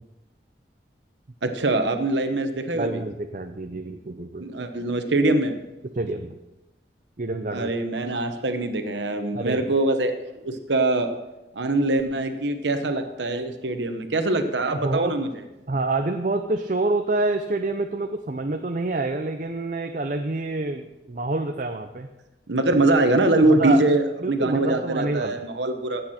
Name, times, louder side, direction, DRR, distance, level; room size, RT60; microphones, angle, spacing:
voice 1, 1.4-3.0 4.4-5.5 7.5-10.1 10.4-11.1 11.5-15.3 22.5-26.0, right 2 dB, 90° right, 6 dB, 1.1 m, -23 dB
voice 2, 2.7-4.4 5.9-6.4 7.2-7.7 9.3-9.7 14.8-15.2 15.7-22.1 23.4-23.8 24.2-25.4, right 2 dB, 45° right, 5 dB, 0.6 m, -27 dB
16.0 x 8.3 x 4.4 m, 0.98 s
head